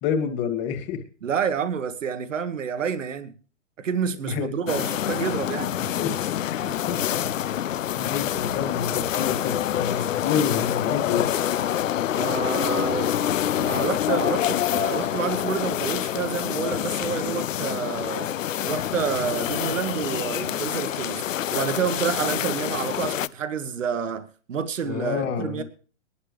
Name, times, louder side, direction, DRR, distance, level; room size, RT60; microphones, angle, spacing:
voice 1, 0.0-1.0 4.2-4.6 6.0-6.1 6.4-7.6 8.0-11.3 24.8-25.6, left 7 dB, 30° left, 2.4 m, -29 dB
voice 2, 1.2-3.3 3.8-5.7 12.1-13.2 13.5-18.3 18.6-25.6, right 7 dB, 80° right, 1.4 m, -29 dB
sound 1, 4.7-23.3, left 11 dB, 85° left, 0.7 m, -26 dB
21.0 x 11.5 x 3.3 m
hypercardioid pair, 135°, 38 cm